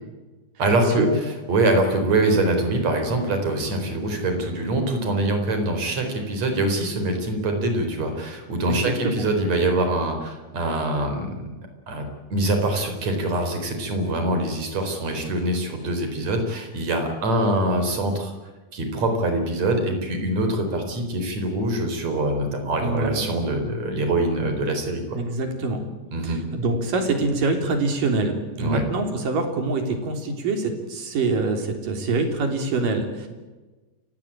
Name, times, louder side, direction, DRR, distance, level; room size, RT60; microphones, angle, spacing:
voice 1, 0.6-11.4 11.9-18.3 18.7-25.2 26.1-26.4 28.6-28.8, right 1 dB, 55° right, 6 dB, 5.5 m, -24 dB
voice 2, 8.7-9.2 22.8-23.2 25.2-25.8 26.2-33.3, right 3 dB, 85° right, 5 dB, 5.1 m, -25 dB
29.0 x 17.5 x 8.9 m, 1.2 s
omnidirectional pair, 3.7 m